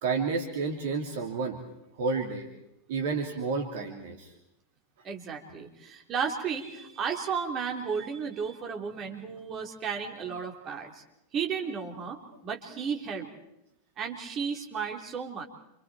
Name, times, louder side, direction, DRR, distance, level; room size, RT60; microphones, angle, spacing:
voice 1, 0.0-1.6 1.9-2.5 2.9-4.3, right 4 dB, 55° right, 3 dB, 2.8 m, -30 dB
voice 2, 5.0-11.0 11.3-13.3 14.0-15.4, right 6 dB, 30° right, 2 dB, 3.7 m, -34 dB
28.5 x 27.5 x 4.6 m, 0.84 s
figure-of-eight pair, 90°, 0 cm